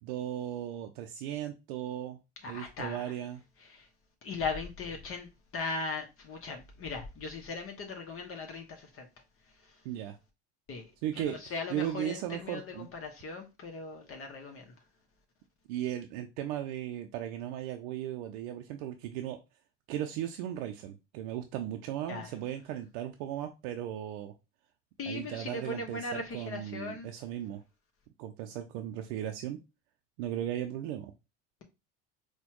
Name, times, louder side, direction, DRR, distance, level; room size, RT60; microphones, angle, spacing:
voice 1, 0.0-2.2 2.5-3.4 9.8-10.2 11.0-12.9 15.7-19.4 19.9-24.3 25.1-27.6 28.2-29.6 30.2-31.1, right 11 dB, 80° right, 0.5 m, -36 dB
voice 2, 2.4-3.1 3.6-3.9 4.2-9.1 9.6-9.8 10.7-14.7 22.1-22.3 25.0-27.1, left 3 dB, 45° left, 0.9 m, -39 dB
4.2 x 2.2 x 2.9 m
hypercardioid pair, 80°, 32 cm